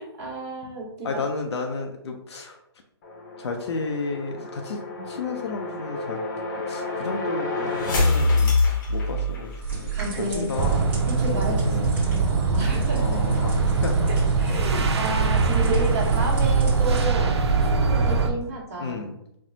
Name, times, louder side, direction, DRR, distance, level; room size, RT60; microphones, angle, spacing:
voice 1, 0.0-1.2 4.9-5.0 9.9-10.5 11.1-13.0 14.1-17.4 17.7-19.0, right 1 dB, 35° right, -4 dB, 1.1 m, -31 dB
voice 2, 1.0-2.6 3.4-4.8 5.1-6.2 6.7-8.5 8.9-10.8 11.2-11.9 13.0-14.1 14.7-15.0 18.8-19.1, left 3 dB, 75° left, 2 dB, 0.5 m, -32 dB
sound 1, 3.0-9.8, left 3 dB, 45° left, 0.8 m, -26 dB
sound 2, 9.6-17.0, right 7 dB, 10° right, 0.8 m, -35 dB
sound 3, 10.5-18.3, right 4 dB, 75° right, 0.5 m, -22 dB
4.3 x 2.0 x 2.7 m, 0.81 s
hypercardioid pair, 145°, 14 cm